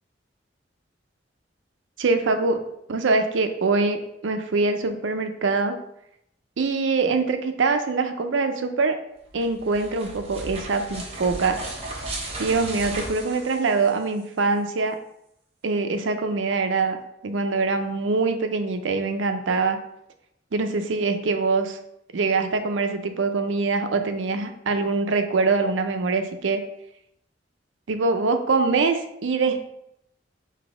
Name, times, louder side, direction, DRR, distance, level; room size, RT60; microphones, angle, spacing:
voice 1, 2.0-2.6 2.9-5.8 6.6-9.0 9.3-11.6 12.4-15.0 15.6-17.0 17.2-19.8 20.5-21.8 22.1-26.6 27.9-29.7, right 3 dB, 85° right, 7 dB, 0.5 m, -23 dB
sound 1, 9.3-14.2, right 2 dB, 30° right, 0.8 m, -35 dB
4.0 x 2.7 x 4.8 m, 0.78 s
head